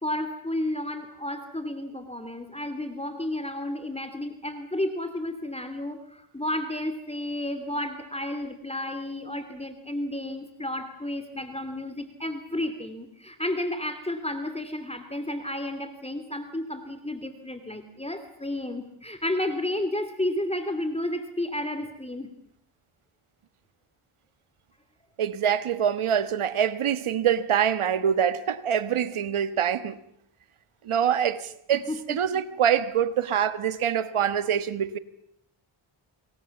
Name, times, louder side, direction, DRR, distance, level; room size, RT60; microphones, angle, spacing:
voice 1, 0.0-22.3 31.7-32.4, left 1 dB, 10° left, 2.6 m, -32 dB
voice 2, 25.2-30.0 30.8-35.0, right 9 dB, 80° right, 1.5 m, -25 dB
27.0 x 22.0 x 7.2 m
cardioid pair, 70°, 50 cm